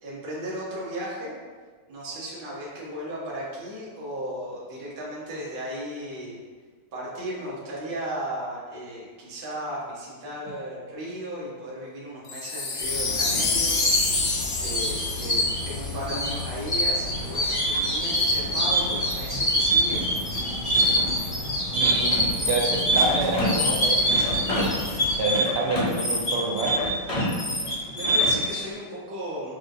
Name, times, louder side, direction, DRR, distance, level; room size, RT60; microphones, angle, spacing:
voice 1, 0.0-1.3 1.9-6.4 6.9-14.1 14.6-20.1 20.4-20.8 27.9-29.5, right 1 dB, 40° right, -7 dB, 0.8 m, -35 dB
Wind chime, 12.3-16.6 17.2-17.3, left 3 dB, 75° left, 1.4 m, -28 dB
sound 1, 12.8-25.2, left 1 dB, 50° left, 0.3 m, -27 dB
sound 2, 17.4-28.6, right 1 dB, 35° left, 0.7 m, -25 dB
voice 2, 21.7-22.2 22.5-24.7 25.2-26.7, right 3 dB, 85° right, 0 dB, 1.5 m, -28 dB
6.1 x 2.4 x 2.6 m, 1.5 s
omnidirectional pair, 2.3 m